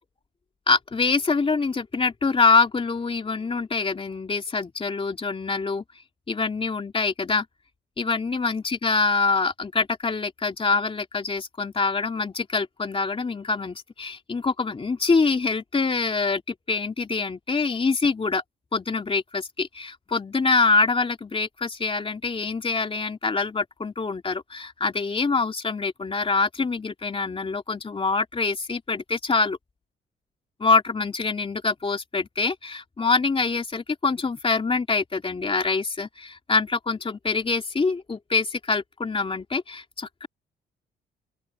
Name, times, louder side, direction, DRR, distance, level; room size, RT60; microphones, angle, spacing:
voice 1, 0.7-5.8 6.3-7.4 8.0-18.4 18.7-29.6 30.6-40.3, left 4 dB, 25° left, 2.8 m, -25 dB
open air
cardioid pair, 90°, 20 cm